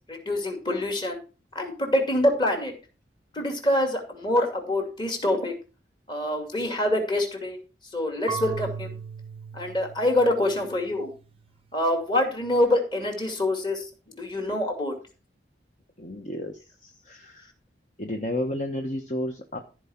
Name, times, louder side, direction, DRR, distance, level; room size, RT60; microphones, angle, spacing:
voice 1, 0.1-1.2 1.5-2.7 3.3-5.5 6.1-7.6 7.9-9.0 9.5-11.1 11.7-13.9 14.2-14.9, left 1 dB, 25° left, 4 dB, 2.4 m, -25 dB
Marimba xylophone / Wood, 8.3-11.1, right 6 dB, 30° right, 0.6 m, -37 dB
voice 2, 16.0-16.7 17.0-17.5 18.0-19.6, left 1 dB, 40° left, 5 dB, 1.0 m, -31 dB
14.0 x 4.8 x 5.7 m, 0.33 s
head